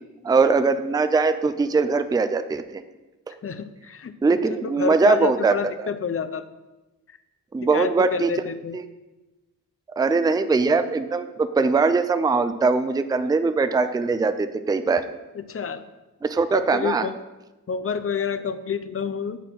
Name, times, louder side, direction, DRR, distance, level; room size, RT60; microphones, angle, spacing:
voice 1, 0.2-2.8 3.3-3.4 4.2-5.6 7.5-8.3 8.7-8.8 10.0-15.1 16.2-17.1, right 4 dB, 10° right, 11 dB, 0.3 m, -21 dB
voice 2, 3.4-4.2 4.5-6.4 7.7-8.8 15.4-15.8 16.5-17.1 17.7-19.4, left 6 dB, 40° left, 12 dB, 0.5 m, -28 dB
10.0 x 4.2 x 7.5 m, 1.1 s
wide cardioid pair, 170°, 34 cm